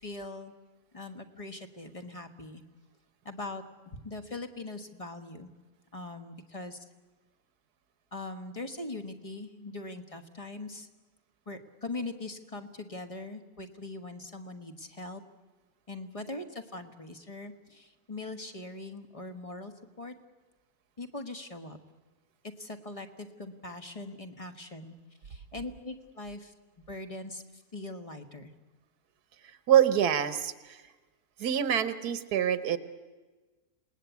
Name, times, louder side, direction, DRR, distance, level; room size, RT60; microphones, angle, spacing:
voice 1, 0.0-0.6 0.9-2.6 3.2-3.6 3.9-5.5 5.9-6.8 8.1-10.9 11.5-15.2 15.9-19.7 20.0-20.1 21.0-21.8 22.6-25.0 25.2-26.5 26.9-27.4 27.7-28.5, left 2 dB, 25° left, 7 dB, 1.3 m, -41 dB
voice 2, 29.7-30.8 31.4-32.8, right 9 dB, 85° right, 12 dB, 1.6 m, -25 dB
28.0 x 19.0 x 8.3 m, 1.3 s
omnidirectional pair, 1.6 m